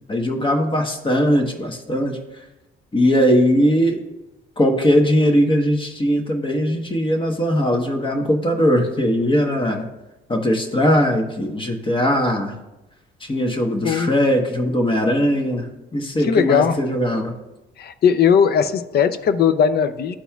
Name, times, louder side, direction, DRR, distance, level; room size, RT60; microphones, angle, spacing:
voice 1, 0.1-2.2 2.9-4.0 4.6-9.9 10.3-12.5 13.2-15.7 15.9-17.3, equal, 25° left, 3 dB, 1.1 m, -19 dB
voice 2, 16.2-16.8 17.8-20.2, left 7 dB, 55° left, 12 dB, 0.5 m, -18 dB
11.5 x 4.1 x 2.3 m, 0.99 s
cardioid pair, 90°, 20 cm